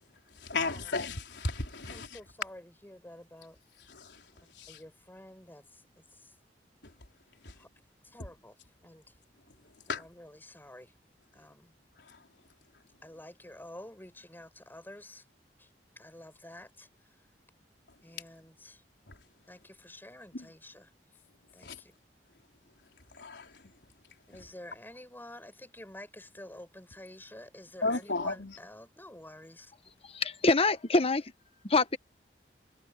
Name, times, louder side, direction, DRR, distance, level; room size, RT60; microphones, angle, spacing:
voice 1, 0.4-2.2 3.9-4.2 4.6-4.8 6.8-6.9 7.4-7.5 9.9-10.0 12.1-12.2 19.1-19.2 20.3-20.5 21.6-21.8 23.1-23.6 24.3-24.4 27.8-28.6, left 3 dB, 75° left, 4.2 m, -34 dB
voice 2, 1.9-3.6 4.7-5.8 6.2-6.3 7.6-7.7 8.1-8.6 8.8-9.0 10.0-10.9 11.3-11.7 13.0-15.2 15.6-15.7 16.0-16.9 18.0-18.8 19.5-20.9 21.5-21.9 24.3-29.7, left 1 dB, 10° left, 6.4 m, -49 dB
voice 3, 30.1-31.2 31.7-32.0, left 3 dB, 35° left, 1.2 m, -25 dB
head